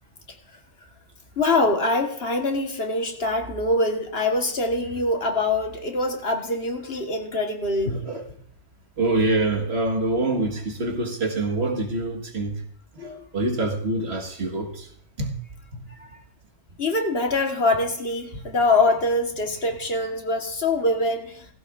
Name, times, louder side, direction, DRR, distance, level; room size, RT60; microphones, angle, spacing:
voice 1, 1.4-7.9 16.8-21.5, left 2 dB, 55° left, 1.6 m, -24 dB
voice 2, 7.9-8.2 9.0-12.6 13.0-14.9 15.2-15.3 15.7-15.8, right 2 dB, 60° right, 1.8 m, -25 dB
17.0 x 16.0 x 2.5 m
omnidirectional pair, 1.2 m